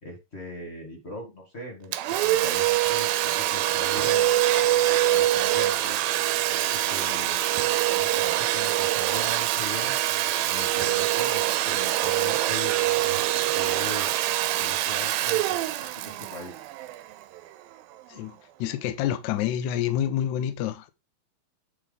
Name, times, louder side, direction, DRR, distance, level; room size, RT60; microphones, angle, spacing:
voice 1, 0.0-4.3 5.1-6.0 6.4-7.4 7.9-10.0 10.5-12.7 13.5-14.1 14.6-15.6 16.0-16.6, left 1 dB, 35° left, 1.0 m, -40 dB
Domestic sounds home sounds, 1.9-17.4, right 14 dB, 85° right, 2.4 m, -24 dB
voice 2, 18.6-20.9, left 11 dB, 80° left, 1.7 m, -27 dB
9.4 x 4.1 x 4.0 m
omnidirectional pair, 4.2 m